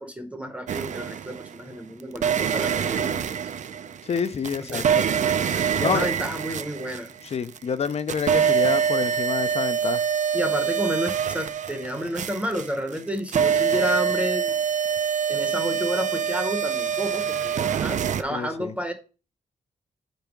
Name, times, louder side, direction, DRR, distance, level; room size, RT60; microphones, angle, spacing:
voice 1, 0.0-3.1 4.6-4.9 5.7-7.1 10.3-14.5 15.3-18.9, equal, 10° right, 0.7 m, -30 dB
sound 1, 0.7-1.6 2.1-7.6 7.8-18.2, right 7 dB, 55° right, 0.4 m, -25 dB
voice 2, 4.1-5.0 5.8-6.1 7.3-10.0 18.3-18.7, left 6 dB, 45° left, 0.5 m, -28 dB
5.3 x 4.4 x 5.9 m
wide cardioid pair, 180°, 15 cm